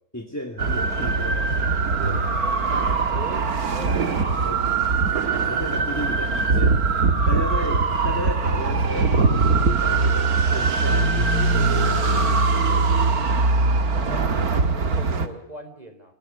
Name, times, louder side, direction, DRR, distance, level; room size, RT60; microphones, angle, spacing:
voice 1, 0.1-2.3 4.4-4.7 5.5-6.8 7.3-13.0, left 1 dB, 10° left, 4 dB, 2.1 m, -34 dB
sound 1, 0.6-15.3, right 4 dB, 90° right, 2.3 m, -21 dB
voice 2, 3.0-3.5 3.7-4.6 13.9-14.4 14.7-16.1, right 1 dB, 30° right, 8 dB, 4.2 m, -39 dB
25.5 x 19.5 x 9.6 m, 0.67 s
omnidirectional pair, 1.5 m